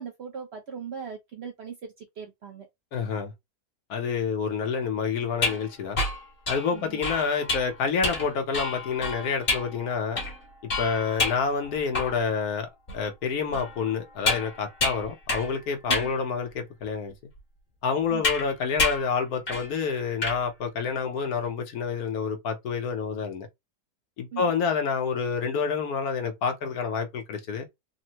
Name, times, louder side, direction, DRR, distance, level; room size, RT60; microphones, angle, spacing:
voice 1, 0.0-2.7 6.7-7.0 15.9-16.1 18.1-18.2 24.3-24.4, right 7 dB, 60° right, 0.7 m, -39 dB
voice 2, 2.9-3.3 3.9-6.0 6.5-10.2 10.8-17.1 17.8-23.5 24.2-27.7, left 5 dB, 75° left, 1.2 m, -28 dB
sound 1, 5.3-12.4 12.9-13.0 13.5-15.6 15.9-16.2 16.8-16.9 18.2-18.5 18.8-19.1 19.5-19.7 20.0-20.4, left 3 dB, 40° left, 1.3 m, -29 dB
3.5 x 2.0 x 2.8 m
omnidirectional pair, 1.6 m